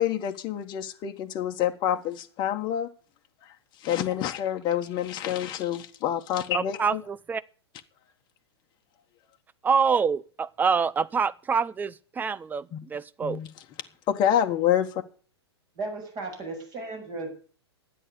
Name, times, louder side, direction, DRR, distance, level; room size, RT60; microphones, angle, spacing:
voice 1, 0.0-2.9 3.8-7.0 12.7-12.8 13.2-13.5 14.1-15.0, left 10 dB, 30° left, 1.5 m, -27 dB
voice 2, 6.5-7.4 9.6-13.4, right 6 dB, 10° right, 0.6 m, -26 dB
voice 3, 15.8-17.3, right 3 dB, 30° right, 7.0 m, -35 dB
13.0 x 10.0 x 6.9 m
hypercardioid pair, 115°, 14 cm